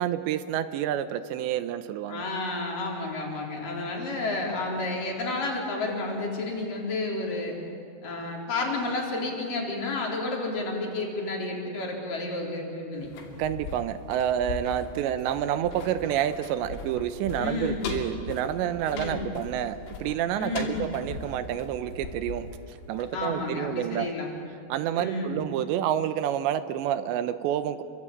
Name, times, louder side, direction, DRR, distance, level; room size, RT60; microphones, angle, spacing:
voice 1, 0.0-2.2 13.4-24.1 24.7-27.8, right 10 dB, 80° right, 11 dB, 3.0 m, -29 dB
voice 2, 2.1-7.6 8.0-13.1 17.4-17.9 18.9-19.3 20.4-20.8 23.1-24.3 24.9-25.4, left 2 dB, 50° left, -1 dB, 5.4 m, -31 dB
sound 1, 12.9-23.7 24.0-24.1, left 4 dB, 75° left, 4.9 m, -40 dB
28.5 x 23.5 x 8.7 m, 2.6 s
omnidirectional pair, 5.2 m